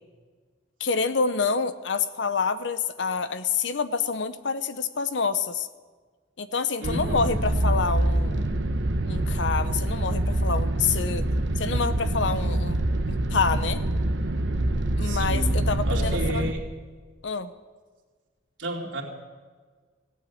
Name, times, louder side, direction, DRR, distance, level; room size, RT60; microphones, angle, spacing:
voice 1, 0.8-5.7 6.4-8.5 9.1-11.2 11.6-13.8 15.0-16.5 17.2-17.5, left 5 dB, 70° left, 12 dB, 0.8 m, -27 dB
sound 1, 6.8-16.5, right 1 dB, 70° right, 1.0 m, -25 dB
voice 2, 6.8-7.2 15.0-15.6 15.9-16.7 18.6-19.0, right 1 dB, 85° right, 0 dB, 2.9 m, -32 dB
17.0 x 8.3 x 8.4 m, 1.5 s
head